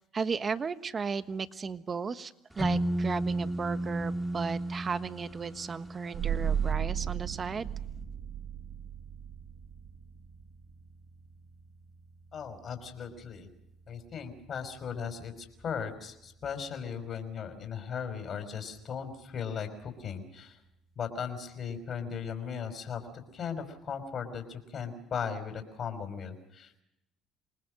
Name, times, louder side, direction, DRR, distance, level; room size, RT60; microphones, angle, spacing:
voice 1, 0.0-7.7, right 5 dB, 35° right, 11 dB, 1.3 m, -35 dB
sound 1, 2.6-6.4, right 1 dB, 5° right, 1.9 m, -33 dB
sound 2, 6.1-17.4, right 8 dB, 65° right, 1.6 m, -38 dB
voice 2, 12.3-13.5 13.9-15.3 15.6-20.6 21.0-23.0 23.3-26.8, left 7 dB, 45° left, 7 dB, 5.1 m, -37 dB
27.0 x 20.0 x 6.5 m, 0.83 s
supercardioid pair, 85°, 0 cm